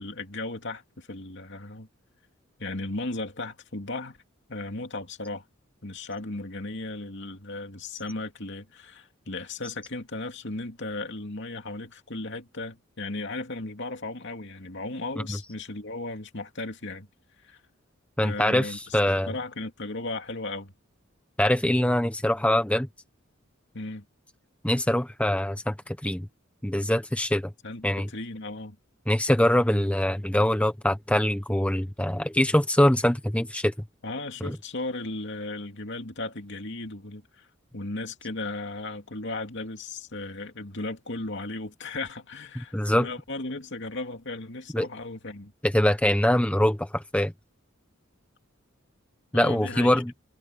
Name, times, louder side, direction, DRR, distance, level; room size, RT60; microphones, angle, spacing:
voice 1, 0.0-1.9 2.6-4.2 4.5-5.4 5.8-17.1 17.4-17.6 18.2-19.0 19.3-20.7 23.7-24.0 27.6-28.8 34.0-37.5 37.7-45.5 49.3-50.0, left 2 dB, 60° left, 2.7 m, -36 dB
voice 2, 18.2-19.3 21.4-22.9 24.6-26.3 26.6-27.5 27.8-28.1 29.1-33.7 34.4-34.6 42.5-43.1 44.7-44.9 45.6-47.3 49.3-50.1, left 1 dB, 5° left, 1.0 m, -23 dB
head